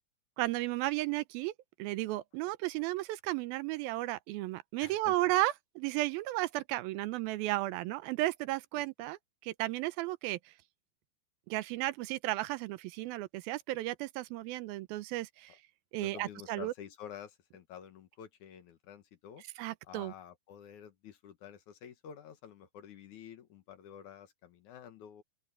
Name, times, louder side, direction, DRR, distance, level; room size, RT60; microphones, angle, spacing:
voice 1, 0.4-1.5 1.8-10.5 11.5-15.6 15.9-16.7 19.6-20.1, right 17 dB, 85° right, 2.5 m, -34 dB
voice 2, 4.8-5.2 16.0-19.4 19.9-25.2, left 9 dB, 60° left, 2.5 m, -50 dB
open air
omnidirectional pair, 4.3 m